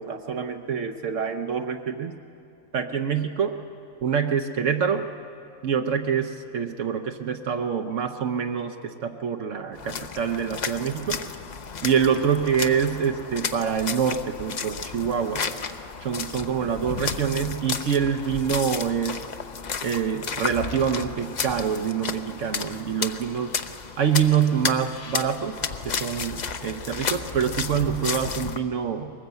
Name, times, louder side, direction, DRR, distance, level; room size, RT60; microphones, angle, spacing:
voice 1, 0.0-2.1 2.7-3.6 4.0-5.1 5.6-11.2 11.8-15.4 16.0-19.2 19.8-23.5 24.0-25.6 25.8-29.1, right 7 dB, 70° right, 5 dB, 1.1 m, -26 dB
sound 1, 9.7-28.6, left 6 dB, 45° left, 0.6 m, -33 dB
22.0 x 19.0 x 8.0 m, 2.5 s
omnidirectional pair, 1.4 m